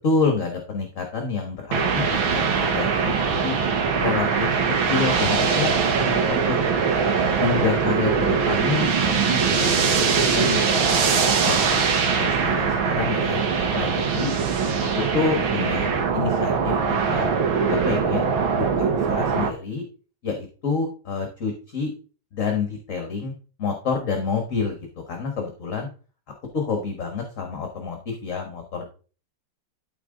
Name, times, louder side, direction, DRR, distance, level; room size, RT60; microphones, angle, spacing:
voice 1, 0.0-3.5 4.0-4.5 4.8-5.7 6.0-6.6 7.4-11.8 12.2-13.4 13.8-14.3 14.8-17.3 17.7-19.8 20.2-21.9 22.3-23.3 23.6-24.8 25.1-25.9 26.5-28.9, left 5 dB, 45° left, 3 dB, 1.6 m, -28 dB
sound 1, 1.7-19.5, right 5 dB, 90° right, 1.9 m, -22 dB
12.5 x 4.4 x 3.8 m, 0.37 s
omnidirectional pair, 2.1 m